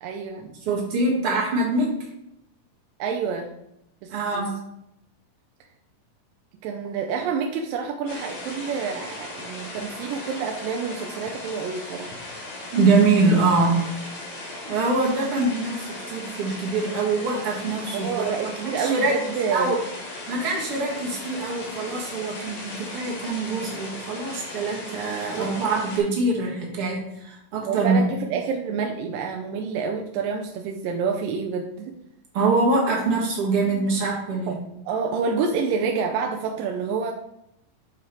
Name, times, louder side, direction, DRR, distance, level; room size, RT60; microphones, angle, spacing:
voice 1, 0.0-0.5 3.0-3.5 4.0-4.5 6.6-12.1 18.0-19.8 25.3-25.5 27.6-32.0 34.5-34.6 34.9-37.1, right 5 dB, 85° right, 2 dB, 2.3 m, -28 dB
voice 2, 0.6-2.0 4.1-4.5 12.7-13.8 14.6-18.2 18.6-19.1 19.5-19.8 20.3-28.0 32.3-34.6, right 3 dB, 45° right, -3 dB, 2.3 m, -24 dB
sound 1, 8.1-26.0, left 2 dB, 70° left, 3.3 m, -37 dB
7.1 x 4.9 x 4.5 m, 0.80 s
omnidirectional pair, 3.9 m